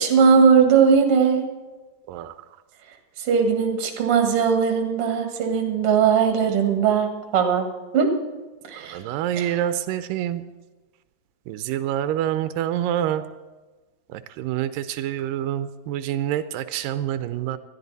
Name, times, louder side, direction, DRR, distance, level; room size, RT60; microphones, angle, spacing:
voice 1, 0.0-1.5 3.2-7.7 7.9-8.1 8.7-9.0 9.4-9.6, right 6 dB, 50° right, 4 dB, 2.3 m, -19 dB
voice 2, 8.9-10.4 11.5-13.2 14.1-17.6, right 11 dB, 90° right, 11 dB, 2.3 m, -27 dB
20.5 x 13.0 x 4.1 m, 1.2 s
omnidirectional pair, 3.8 m